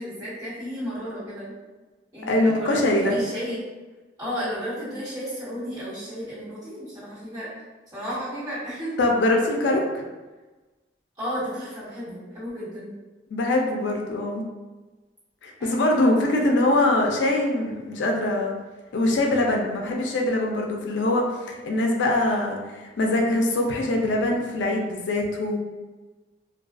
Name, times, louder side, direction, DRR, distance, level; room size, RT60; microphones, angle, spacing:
voice 1, 0.0-1.5 2.1-3.6 4.2-7.5 7.9-8.9 11.2-12.9 15.6-16.4, equal, 20° right, -12 dB, 1.4 m, -33 dB
voice 2, 2.3-3.2 9.0-10.0 13.3-14.4 15.4-18.5 18.9-25.6, left 1 dB, 90° left, 1 dB, 0.4 m, -23 dB
2.3 x 2.2 x 2.4 m, 1.2 s
head